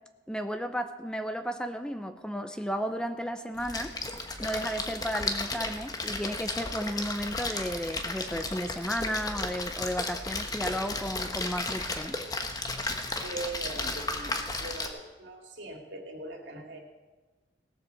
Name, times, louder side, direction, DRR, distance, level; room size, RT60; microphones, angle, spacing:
voice 1, 0.3-3.9 4.4-12.2, equal, 5° left, 9 dB, 0.6 m, -33 dB
Splash splatter, 3.6-14.9, left 2 dB, 20° left, 1.1 m, -34 dB
voice 2, 13.2-16.8, right 2 dB, 85° right, 2 dB, 2.5 m, -40 dB
17.5 x 7.6 x 6.9 m, 1.2 s
head